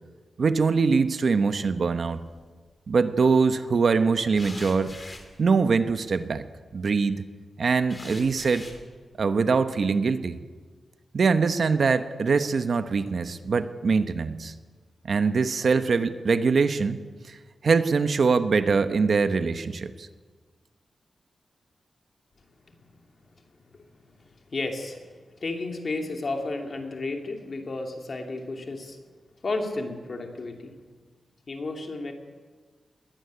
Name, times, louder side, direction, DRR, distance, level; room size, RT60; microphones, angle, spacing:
voice 1, 0.4-2.2 2.9-4.9 5.4-6.4 6.7-7.2 7.6-8.6 9.2-10.4 11.1-14.5 15.0-17.0 17.3-17.4 17.6-20.1, right 5 dB, 50° right, 10 dB, 0.9 m, -23 dB
sound 1, 2.1-2.6 4.3-6.4 7.9-8.8, left 2 dB, 20° left, 2.9 m, -44 dB
voice 2, 24.5-25.1 25.4-29.0 29.4-30.7 31.5-32.1, left 3 dB, 40° left, 3 dB, 2.7 m, -32 dB
21.0 x 16.5 x 9.5 m, 1.4 s
wide cardioid pair, 180°, 0 cm